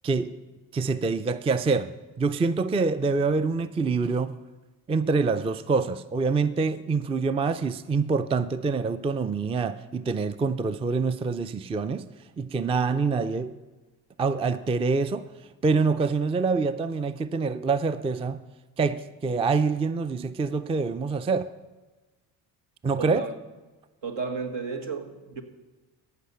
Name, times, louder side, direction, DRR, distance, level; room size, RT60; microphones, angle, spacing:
voice 1, 0.7-1.9 2.2-4.4 4.9-12.1 12.4-13.6 14.2-15.3 15.6-18.4 18.8-21.5 22.8-23.2, right 4 dB, 15° right, 0.4 m, -26 dB
voice 2, 23.0-23.3 24.0-25.4, right 4 dB, 70° right, 1.5 m, -33 dB
14.5 x 5.9 x 5.6 m
supercardioid pair, 55°, 45 cm